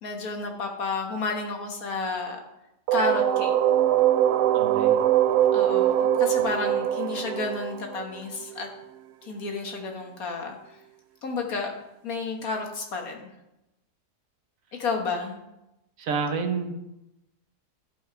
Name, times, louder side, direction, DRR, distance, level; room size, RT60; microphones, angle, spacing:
voice 1, 0.0-2.4 2.9-3.5 5.5-8.7 9.2-10.6 11.2-11.7 12.0-13.3 14.7-15.4, left 4 dB, 60° left, 3 dB, 1.8 m, -31 dB
sound 1, 2.9-8.6, right 11 dB, 80° right, 1.1 m, -22 dB
voice 2, 4.5-5.0 16.0-16.7, right 5 dB, 60° right, 6 dB, 1.3 m, -29 dB
14.0 x 5.5 x 4.5 m, 0.92 s
omnidirectional pair, 1.7 m